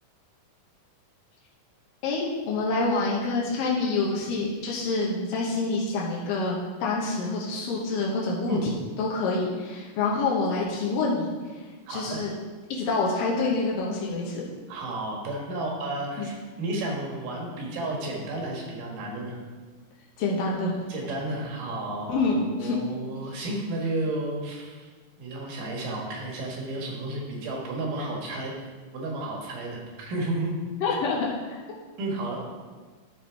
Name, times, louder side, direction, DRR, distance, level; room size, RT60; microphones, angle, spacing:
voice 1, 2.0-8.6 9.0-11.3 11.9-12.3 12.7-14.4 16.2-16.3 20.2-20.8 22.1-22.8 30.8-31.6, left 3 dB, 85° left, -4 dB, 2.7 m, -27 dB
voice 2, 11.9-12.2 14.7-19.4 20.9-22.3 22.6-24.9 25.2-28.5 28.9-30.5 30.9-31.0 32.0-32.4, right 2 dB, 75° right, -1 dB, 3.2 m, -32 dB
13.0 x 4.3 x 4.7 m, 1.4 s
omnidirectional pair, 3.8 m